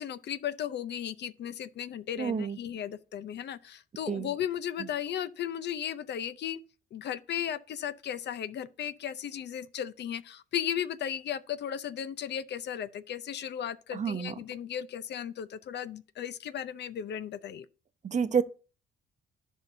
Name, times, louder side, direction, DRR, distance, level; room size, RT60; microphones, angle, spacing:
voice 1, 0.0-6.6 6.9-17.7, left 9 dB, 60° left, 0.6 m, -35 dB
voice 2, 2.2-2.6 4.1-4.3 13.9-14.3 18.0-18.4, right 6 dB, 35° right, 0.7 m, -28 dB
14.5 x 5.6 x 2.7 m
cardioid pair, 90°, 20 cm